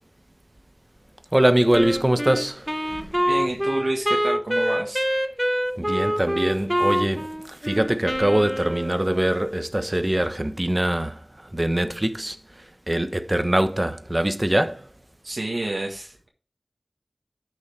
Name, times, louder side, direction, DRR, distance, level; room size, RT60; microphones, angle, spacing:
voice 1, 1.3-3.1 5.8-11.2 11.5-12.4 12.9-14.8, right 1 dB, 30° right, 1.1 m, -23 dB
Wind instrument woodwind instrument, 1.7-9.2, equal, 5° right, 0.8 m, -25 dB
voice 2, 3.3-5.0 15.2-16.3, right 2 dB, 80° right, 1.5 m, -29 dB
11.0 x 6.3 x 3.4 m
wide cardioid pair, 50°, 0 cm